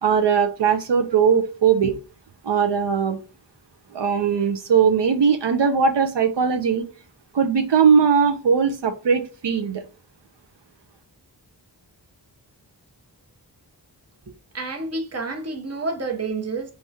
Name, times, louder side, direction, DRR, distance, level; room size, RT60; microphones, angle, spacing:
voice 1, 0.0-2.0 2.4-3.2 3.9-6.8 7.3-9.8, right 6 dB, 80° right, 0.6 m, -19 dB
voice 2, 14.5-16.7, right 3 dB, 35° right, 0.8 m, -29 dB
3.4 x 3.2 x 2.7 m
wide cardioid pair, 40°, 42 cm